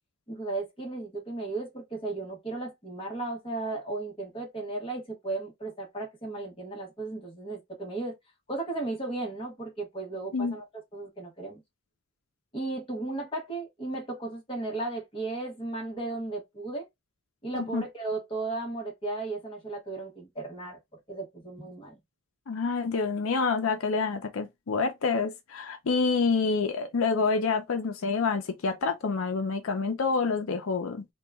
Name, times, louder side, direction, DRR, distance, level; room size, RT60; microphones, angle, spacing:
voice 1, 0.3-8.1 8.5-10.6 10.9-11.6 12.5-16.8 17.4-20.8 21.1-22.0, right 2 dB, 25° left, 1.2 m, -35 dB
voice 2, 22.5-31.1, left 4 dB, 85° left, 0.5 m, -27 dB
2.9 x 2.3 x 3.4 m
head